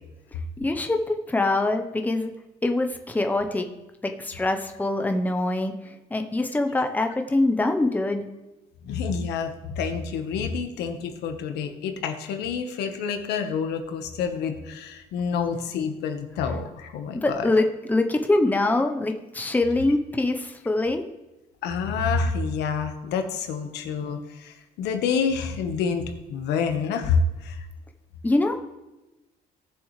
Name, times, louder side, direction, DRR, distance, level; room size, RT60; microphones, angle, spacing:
voice 1, 0.6-2.3 2.6-3.7 4.0-5.7 6.1-8.2 17.1-21.0 28.2-28.6, left 2 dB, 10° left, 5 dB, 0.9 m, -24 dB
voice 2, 8.8-17.4 21.6-27.6, left 5 dB, 85° left, 6 dB, 1.4 m, -28 dB
18.5 x 6.9 x 3.3 m, 1.0 s
cardioid pair, 110°, 17 cm